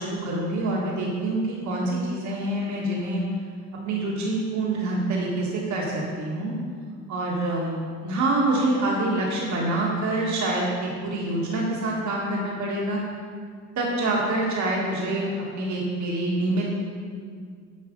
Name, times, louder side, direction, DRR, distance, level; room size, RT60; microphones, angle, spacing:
voice 1, 0.0-3.2 3.8-6.5 7.1-13.0 13.8-16.6, right 2 dB, 70° right, -4 dB, 1.9 m, -26 dB
9.3 x 5.8 x 5.3 m, 2.1 s
cardioid pair, 90°, 30 cm